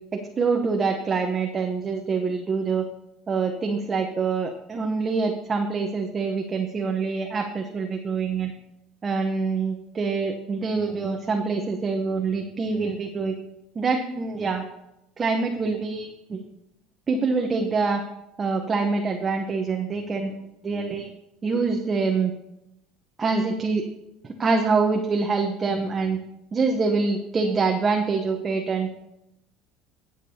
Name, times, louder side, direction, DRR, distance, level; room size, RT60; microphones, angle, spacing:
voice 1, 0.1-2.8 3.3-8.5 9.0-13.4 13.8-14.7 15.2-16.4 17.1-18.0 18.4-20.4 20.6-21.1 21.4-22.3 23.2-23.8 24.2-26.2 26.5-28.9, right 4 dB, 30° right, 3 dB, 0.8 m, -25 dB
15.5 x 7.4 x 2.8 m, 0.87 s
supercardioid pair, 100°, 0 cm